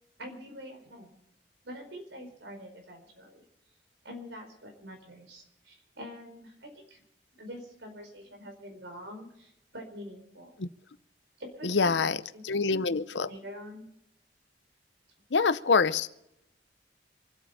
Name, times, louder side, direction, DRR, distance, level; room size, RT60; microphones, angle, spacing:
voice 1, 0.2-1.2 1.6-3.4 4.0-7.0 7.3-10.5 11.4-12.4 13.2-13.9, equal, 80° right, 3 dB, 4.7 m, -45 dB
voice 2, 11.6-13.3 15.3-16.1, left 4 dB, 75° left, 15 dB, 0.7 m, -26 dB
26.0 x 8.8 x 5.6 m, 0.82 s
head